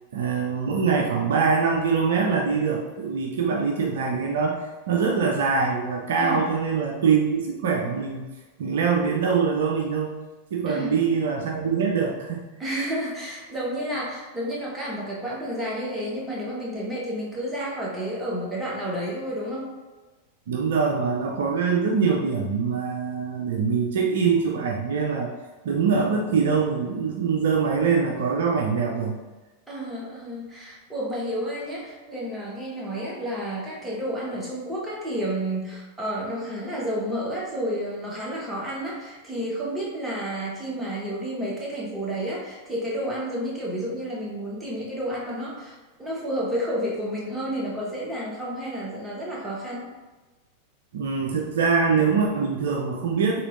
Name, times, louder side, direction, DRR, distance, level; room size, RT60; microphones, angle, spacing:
voice 1, 0.1-8.2 8.6-10.2 10.5-12.4 20.5-25.3 25.6-29.2 50.9-53.4, right 5 dB, 60° right, 0 dB, 0.4 m, -23 dB
voice 2, 10.7-11.0 12.6-19.7 29.7-49.9, equal, 10° right, -5 dB, 1.2 m, -31 dB
4.2 x 3.6 x 2.6 m, 1.2 s
figure-of-eight pair, 90°, 0 cm